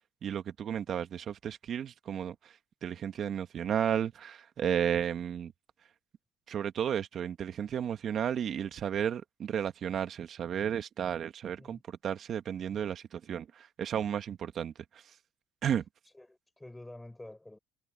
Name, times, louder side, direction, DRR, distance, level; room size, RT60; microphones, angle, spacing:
voice 1, 0.2-2.5 2.8-5.5 6.5-15.0 15.6-15.8, right 9 dB, 50° right, 1.7 m, -33 dB
voice 2, 16.1-17.6, left 1 dB, 10° left, 4.7 m, -48 dB
cardioid pair, 105°, 0 cm